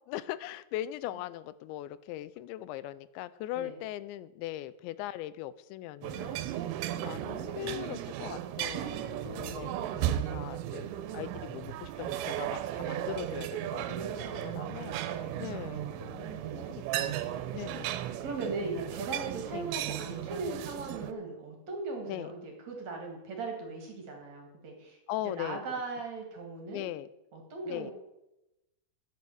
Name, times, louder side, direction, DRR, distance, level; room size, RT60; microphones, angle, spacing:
voice 1, 0.1-6.4 6.9-9.0 9.2-15.0 15.4-17.2 17.5-18.0 19.5-19.7 22.1-22.3 25.1-25.6 26.7-27.1 27.7-27.9, left 14 dB, 90° left, 17 dB, 3.0 m, -40 dB
sound 1, 6.0-21.1, right 12 dB, 85° right, 3.0 m, -35 dB
voice 2, 8.8-10.1 13.9-14.8 15.0-15.4 16.2-16.8 17.1-25.0 25.4-26.9 27.3-27.9, right 3 dB, 50° right, 2 dB, 2.8 m, -39 dB
12.0 x 9.0 x 7.8 m, 0.92 s
omnidirectional pair, 5.0 m